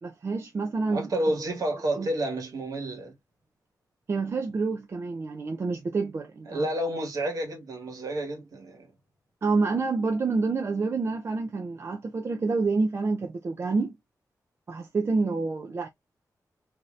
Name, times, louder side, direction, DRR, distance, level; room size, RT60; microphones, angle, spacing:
voice 1, 0.0-1.1 2.0-2.1 4.1-6.7 9.4-13.9 14.7-15.9, right 4 dB, 40° right, 0.4 m, -28 dB
voice 2, 0.9-3.1 6.5-8.9, right 1 dB, 60° right, 1.3 m, -30 dB
3.1 x 2.7 x 2.4 m
wide cardioid pair, 165°, 7 cm